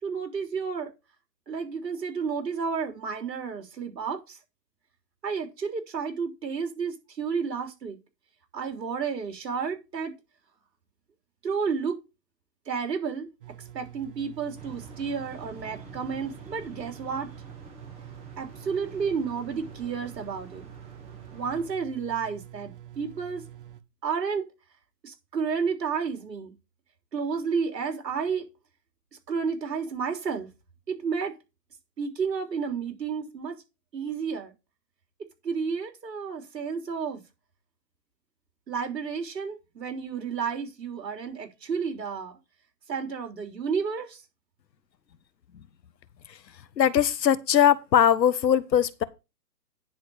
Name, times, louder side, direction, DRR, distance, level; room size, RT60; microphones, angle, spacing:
voice 1, 0.0-0.9 1.5-4.4 5.2-8.0 8.5-10.1 11.4-12.0 12.7-13.3 13.7-17.3 18.4-20.7 21.3-23.4 24.0-24.5 25.0-26.5 27.1-28.5 29.3-30.5 30.9-31.4 32.0-33.6 33.9-34.5 35.4-37.2 38.7-42.3 42.9-44.2, right 6 dB, 80° right, 3.5 m, -31 dB
sound 1, 13.4-23.8, right 12 dB, 35° right, 0.8 m, -47 dB
sound 2, 14.6-21.7, right 3 dB, 10° right, 1.4 m, -48 dB
voice 2, 46.8-49.0, left 9 dB, 80° left, 1.2 m, -21 dB
10.0 x 4.3 x 6.9 m
hypercardioid pair, 155°, 49 cm